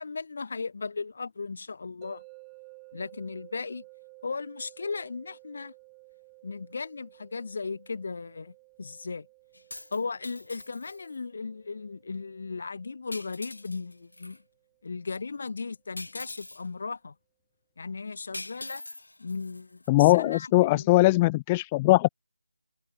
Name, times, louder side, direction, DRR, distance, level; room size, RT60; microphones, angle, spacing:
voice 1, 0.0-2.2 2.9-3.8 4.2-5.7 6.4-9.3 9.9-14.4 14.8-17.1 17.8-18.8 19.2-20.9, left 4 dB, 45° left, 5.7 m, -36 dB
sound 1, 2.0-15.1, right 40 dB or more, 10° right, 2.2 m, -55 dB
sound 2, 9.5-11.2 13.1-14.4 16.0-16.7 18.3-19.9, left 2 dB, 80° left, 3.9 m, -43 dB
voice 2, 19.9-22.1, left 20 dB, 15° left, 0.4 m, -20 dB
figure-of-eight pair, 170°, 0 cm